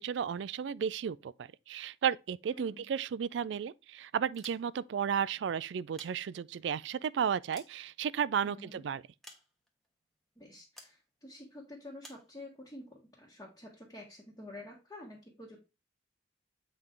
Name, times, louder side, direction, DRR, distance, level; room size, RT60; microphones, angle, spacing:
voice 1, 0.0-9.0, right 7 dB, 75° right, 0.3 m, -33 dB
voice 2, 2.5-2.8 8.4-8.8 10.4-15.6, left 1 dB, 20° left, 1.5 m, -49 dB
sound 1, 4.3-5.0 5.7-6.7 7.2-8.4 9.2-9.9 10.8-11.0 12.0-12.3, equal, ahead, 1.2 m, -55 dB
7.8 x 4.6 x 3.7 m
head